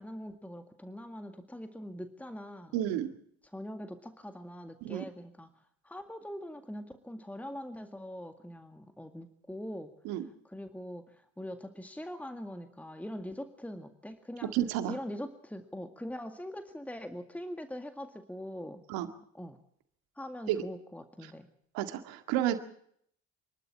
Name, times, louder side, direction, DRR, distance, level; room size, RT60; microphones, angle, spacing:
voice 1, 0.0-2.8 3.4-5.5 5.8-14.5 14.9-18.8 19.3-19.6 20.2-21.5, equal, 5° left, 7 dB, 2.0 m, -42 dB
voice 2, 2.7-3.1 4.8-5.0 10.1-10.2 14.5-15.0 18.9-19.1 20.5-20.6 21.7-22.6, right 12 dB, 85° right, 8 dB, 2.0 m, -31 dB
27.0 x 12.5 x 8.5 m, 0.67 s
supercardioid pair, 65°, 35 cm